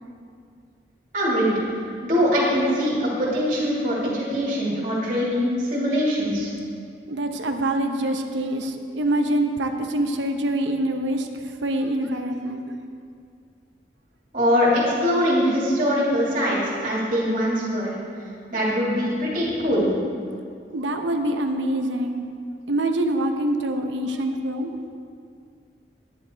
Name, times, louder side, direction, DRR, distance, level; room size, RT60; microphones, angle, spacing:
voice 1, 1.1-1.5 2.0-6.5 14.3-18.0 18.5-19.9, equal, 45° right, -7 dB, 2.7 m, -22 dB
voice 2, 7.1-12.7 20.7-22.2 22.7-24.7, right 1 dB, 85° right, 5 dB, 0.9 m, -25 dB
10.0 x 10.0 x 4.5 m, 2.3 s
head